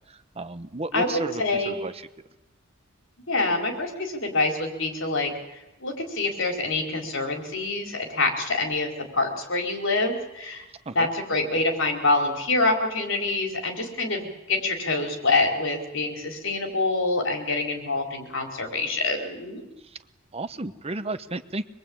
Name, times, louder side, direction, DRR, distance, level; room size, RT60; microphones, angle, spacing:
voice 1, 0.1-2.0 10.9-11.1 20.3-21.6, right 2 dB, 30° right, 12 dB, 0.9 m, -33 dB
voice 2, 0.9-1.8 3.3-5.3 5.8-10.6 10.9-19.6, left 2 dB, 65° left, 3 dB, 4.5 m, -26 dB
24.5 x 22.5 x 8.8 m, 0.99 s
head